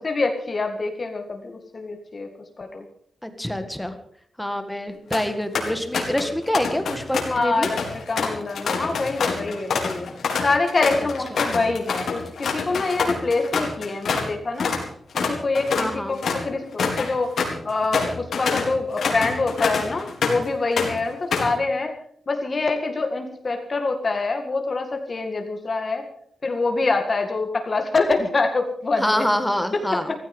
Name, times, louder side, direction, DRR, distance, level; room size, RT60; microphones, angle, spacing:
voice 1, 0.0-2.3 2.6-2.8 6.1-6.3 7.3-10.1 10.4-14.7 15.1-17.4 17.6-21.9 22.3-26.1 26.4-29.2, left 3 dB, 35° left, 4 dB, 1.9 m, -25 dB
voice 2, 3.2-4.0 4.4-7.7 15.8-16.1 29.0-30.1, left 1 dB, 5° left, 8 dB, 1.7 m, -25 dB
sound 1, 4.9-5.3 5.6-6.3 6.5-14.3 14.6-14.8 15.1-20.5 20.8-21.6, left 5 dB, 75° left, 4.1 m, -26 dB
16.5 x 15.5 x 5.4 m, 0.64 s
wide cardioid pair, 155°, 0 cm